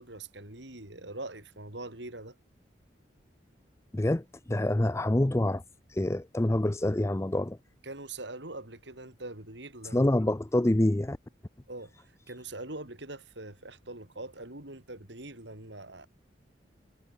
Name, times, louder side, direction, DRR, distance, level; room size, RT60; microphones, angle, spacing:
voice 1, 0.0-2.4 7.8-10.1 11.7-16.1, right 2 dB, 70° right, 4.2 m, -43 dB
voice 2, 3.9-5.6 5.9-7.6 9.8-11.2, left 1 dB, 15° left, 0.5 m, -26 dB
head